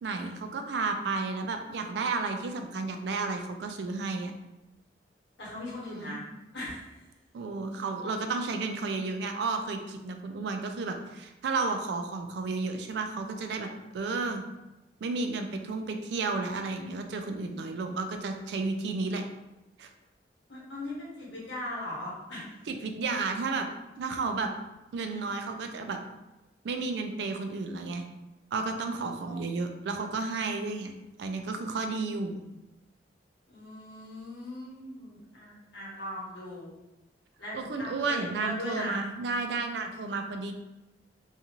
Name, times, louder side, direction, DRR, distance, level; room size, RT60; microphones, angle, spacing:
voice 1, 0.0-4.3 5.9-6.2 7.3-14.4 15.0-19.2 19.8-19.9 22.7-23.7 24.0-24.5 24.9-26.0 26.6-28.0 28.5-30.9 31.2-32.5 37.5-40.5, right 3 dB, 70° right, 5 dB, 0.3 m, -32 dB
voice 2, 5.4-6.2 6.5-7.0 20.5-22.6 29.2-29.4 33.5-36.7 37.4-39.0, left 1 dB, 85° left, -6 dB, 1.2 m, -39 dB
2.6 x 2.3 x 2.9 m, 0.98 s
head